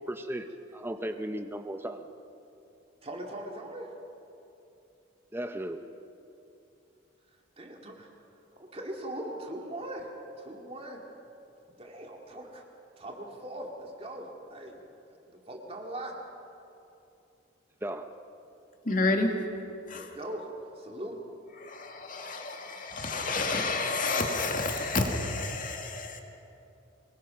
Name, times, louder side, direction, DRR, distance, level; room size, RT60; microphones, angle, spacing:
voice 1, 0.0-2.1 5.3-5.9 17.8-18.1, right 1 dB, 10° right, 0.7 m, -36 dB
voice 2, 3.0-3.9 7.6-8.1 8.7-10.1 10.4-11.0 11.7-12.6 13.0-14.8 15.3-16.1 19.9-20.5 20.8-21.2, right 1 dB, 30° right, 2.2 m, -40 dB
voice 3, 18.8-19.4 19.9-20.1 21.6-26.2, left 3 dB, 40° left, 2.1 m, -30 dB
24.0 x 21.5 x 5.8 m
head